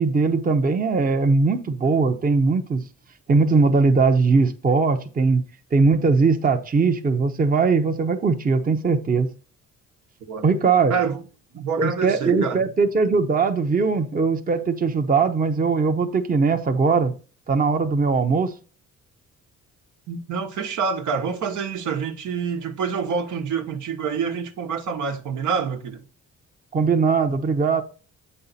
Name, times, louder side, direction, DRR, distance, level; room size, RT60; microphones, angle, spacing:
voice 1, 0.0-2.8 3.3-5.4 5.7-9.3 10.4-10.9 11.8-17.1 17.5-18.5 26.7-27.8, right 4 dB, 30° right, 0.8 m, -20 dB
voice 2, 10.9-11.2 11.5-12.7 20.1-26.0, right 6 dB, 75° right, 1.3 m, -27 dB
8.0 x 5.5 x 4.1 m
cardioid pair, 90°, 30 cm